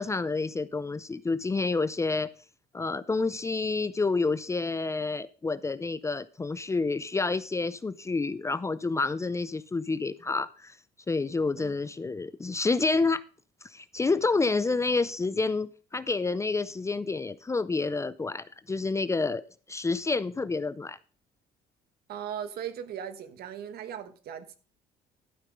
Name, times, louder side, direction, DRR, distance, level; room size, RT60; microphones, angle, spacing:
voice 1, 0.0-2.3 2.7-10.8 11.1-13.2 13.6-21.0, left 3 dB, 15° left, 0.5 m, -29 dB
voice 2, 22.1-24.6, right 9 dB, 65° right, 1.3 m, -38 dB
12.0 x 5.8 x 5.2 m
cardioid pair, 110°, 17 cm